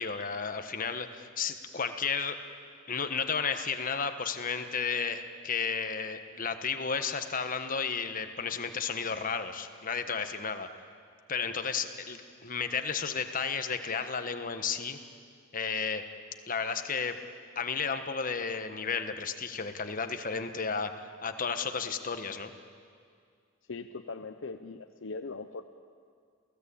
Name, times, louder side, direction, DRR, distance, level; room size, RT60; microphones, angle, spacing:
voice 1, 0.0-2.4 2.9-10.7 11.3-15.0 15.5-16.0 16.5-17.2 17.5-22.5, left 5 dB, 40° left, 8 dB, 1.3 m, -33 dB
voice 2, 23.7-25.6, left 3 dB, 65° left, 7 dB, 0.7 m, -40 dB
28.0 x 17.5 x 8.6 m, 2.2 s
head